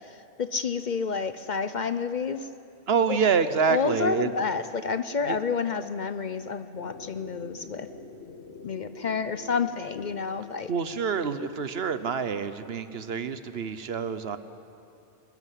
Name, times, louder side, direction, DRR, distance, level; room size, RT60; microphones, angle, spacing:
voice 1, 0.0-2.5 3.1-3.2 3.7-7.9 8.6-10.7, left 5 dB, 50° left, 11 dB, 0.7 m, -29 dB
voice 2, 2.9-4.3 5.3-5.4 10.7-14.4, right 6 dB, 65° right, 12 dB, 1.1 m, -27 dB
sound 1, 6.8-12.4, left 3 dB, 75° left, 1.7 m, -46 dB
23.5 x 13.5 x 9.9 m, 2.7 s
omnidirectional pair, 1.1 m